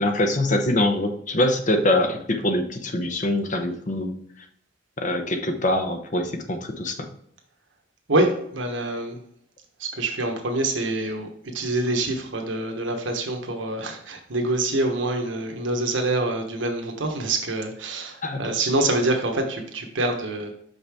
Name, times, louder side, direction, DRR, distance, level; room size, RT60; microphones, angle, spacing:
voice 1, 0.0-4.2 5.0-7.1 18.2-18.4, left 1 dB, 40° left, 5 dB, 0.9 m, -24 dB
voice 2, 8.1-9.2 9.8-20.5, right 2 dB, 85° right, 3 dB, 1.2 m, -26 dB
5.7 x 5.4 x 3.5 m, 0.67 s
head